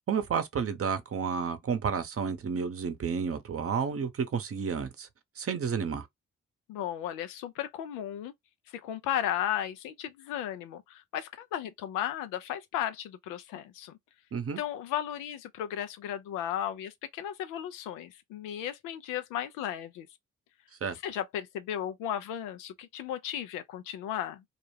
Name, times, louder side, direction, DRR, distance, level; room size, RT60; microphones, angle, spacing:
voice 1, 0.1-5.1 5.4-6.1 14.3-14.6 20.8-21.0, right 6 dB, 45° right, 0.7 m, -31 dB
voice 2, 6.7-8.3 8.7-14.0 14.6-20.1 20.9-24.4, left 11 dB, 90° left, 0.5 m, -35 dB
2.4 x 2.1 x 3.2 m
supercardioid pair, 45°, 31 cm